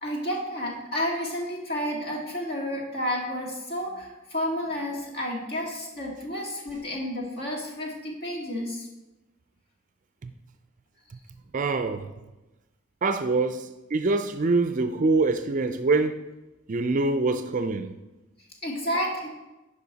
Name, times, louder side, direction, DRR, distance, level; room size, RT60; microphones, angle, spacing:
voice 1, 0.0-8.9 18.6-19.3, equal, 50° left, 1.8 m, -31 dB
voice 2, 11.5-12.1 13.0-16.2 16.7-17.9, right 3 dB, 40° right, 0.4 m, -25 dB
10.5 x 5.1 x 4.0 m
head